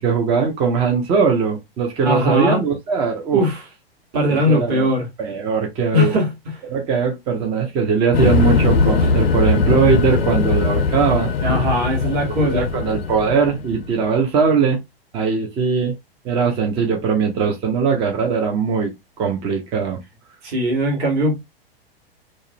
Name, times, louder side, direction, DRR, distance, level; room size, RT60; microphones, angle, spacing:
voice 1, 0.0-3.4 4.3-4.9 5.2-6.1 6.7-11.3 12.0-12.1 12.4-14.8 15.1-16.0 16.2-18.9 19.2-20.0, right 5 dB, 20° right, 0.4 m, -20 dB
voice 2, 2.0-2.6 3.3-3.6 4.1-5.1 5.9-6.6 11.4-12.7 20.4-21.4, equal, 35° right, 1.1 m, -20 dB
sound 1, 8.1-13.9, left 4 dB, 80° left, 0.5 m, -20 dB
2.4 x 2.1 x 2.6 m
figure-of-eight pair, 100°, 30 cm